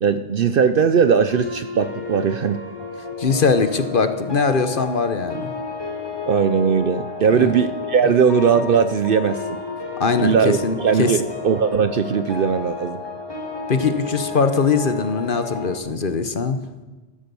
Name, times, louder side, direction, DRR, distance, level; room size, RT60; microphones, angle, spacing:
voice 1, 0.0-2.6 6.3-9.6 10.2-13.0, right 6 dB, 55° right, 11 dB, 0.7 m, -19 dB
sound 1, 1.3-15.8, left 4 dB, 20° left, 2.5 m, -32 dB
voice 2, 3.2-5.5 7.3-7.6 10.0-11.1 13.7-16.6, left 4 dB, 45° left, 10 dB, 1.1 m, -21 dB
14.0 x 12.0 x 6.9 m, 1.2 s
omnidirectional pair, 1.3 m